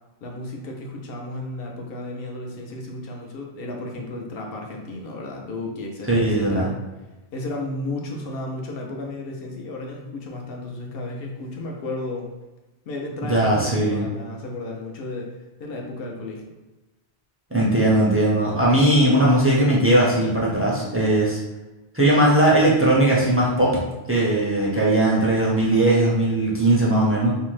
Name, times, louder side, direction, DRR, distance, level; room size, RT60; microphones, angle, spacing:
voice 1, 0.2-6.8 7.3-12.3 12.9-15.3 15.6-16.4, left 2 dB, 70° left, 0 dB, 0.8 m, -33 dB
voice 2, 6.1-6.7 13.3-14.1 17.5-21.4 21.9-23.8 24.1-27.3, right 1 dB, 25° right, -6 dB, 0.3 m, -19 dB
2.7 x 2.1 x 3.1 m, 1.1 s
omnidirectional pair, 1.0 m